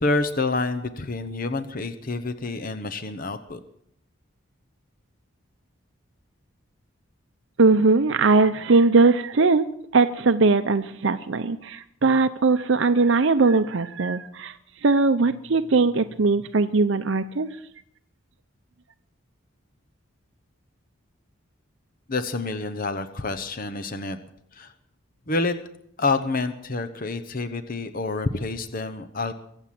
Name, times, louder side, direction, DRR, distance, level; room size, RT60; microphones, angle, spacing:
voice 1, 0.0-3.6 22.1-24.2 24.5-24.7 25.3-25.5 26.0-29.3, left 3 dB, 45° left, 9 dB, 1.0 m, -28 dB
voice 2, 7.6-9.7 9.9-14.6 14.8-17.5, right 3 dB, 60° right, 10 dB, 0.6 m, -20 dB
23.5 x 8.1 x 7.6 m, 0.70 s
head